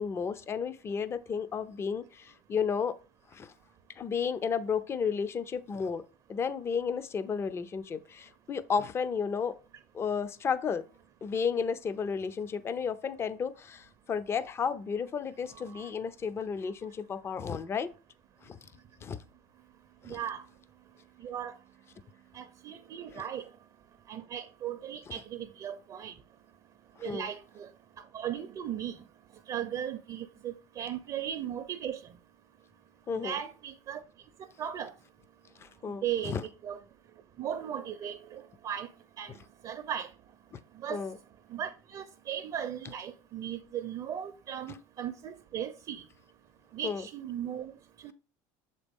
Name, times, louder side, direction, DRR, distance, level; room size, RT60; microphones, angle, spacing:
voice 1, 0.0-2.9 3.3-3.5 4.0-6.0 6.3-9.5 9.9-10.8 11.2-17.9 18.4-18.6 19.0-19.2 20.0-20.2 23.1-23.2 27.0-27.3 33.1-33.4 35.6-36.4 40.9-41.1 46.8-47.0, left 6 dB, 25° left, 0.5 m, -32 dB
voice 2, 20.0-20.4 21.2-21.5 22.3-23.5 24.1-26.1 27.0-27.7 28.1-29.0 29.5-32.0 33.2-34.0 34.6-34.9 36.0-36.4 36.6-36.8 37.4-38.9 39.2-39.3 39.6-40.1 40.8-41.0 41.5-46.0 46.7-47.7 48.0-48.1, right 9 dB, 45° right, 0.5 m, -37 dB
6.6 x 4.1 x 3.5 m
supercardioid pair, 120°, 10 cm